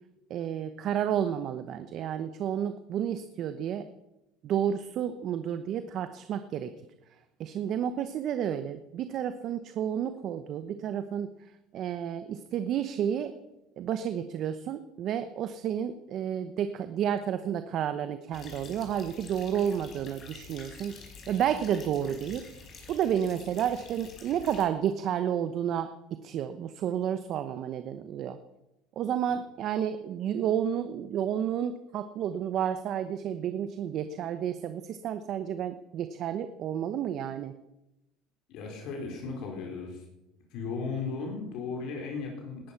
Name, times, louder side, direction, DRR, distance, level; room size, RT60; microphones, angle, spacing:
voice 1, 0.3-3.9 4.4-6.7 7.4-11.3 11.7-13.3 13.8-20.9 21.3-22.4 22.9-25.9 26.2-28.4 29.0-37.5, right 9 dB, 55° right, 10 dB, 1.0 m, -31 dB
sound 1, 18.3-24.7, left 5 dB, 40° left, 5.1 m, -48 dB
voice 2, 38.5-40.0 40.5-42.7, left 4 dB, 65° left, 1 dB, 4.4 m, -36 dB
19.5 x 11.0 x 6.0 m, 0.93 s
supercardioid pair, 100°, 0 cm